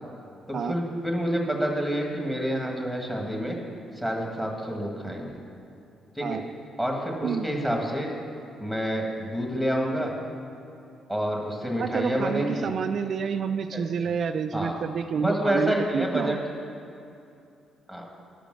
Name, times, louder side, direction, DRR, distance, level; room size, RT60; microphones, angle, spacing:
voice 1, 0.5-3.6 3.9-5.3 6.1-6.4 6.8-8.1 8.6-10.1 11.1-12.7 13.7-13.8 14.5-14.7 15.2-16.4 17.9-18.1, equal, 5° left, 0 dB, 1.7 m, -28 dB
voice 2, 11.8-16.4, right 6 dB, 55° right, 8 dB, 0.3 m, -29 dB
10.5 x 5.1 x 6.2 m, 2.6 s
cardioid pair, 90°, 0 cm